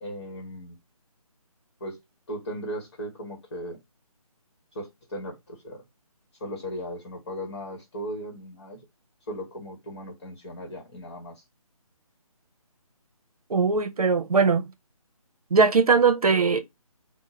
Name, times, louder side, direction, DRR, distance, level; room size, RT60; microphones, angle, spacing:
voice 1, 0.0-0.8 1.8-2.0 2.3-3.8 4.7-5.8 6.4-8.8 9.3-11.4, equal, 30° left, 1.0 m, -37 dB
voice 2, 13.5-14.7 15.5-16.6, right 5 dB, 80° right, 0.6 m, -20 dB
3.6 x 2.0 x 4.0 m
figure-of-eight pair, 160°, 19 cm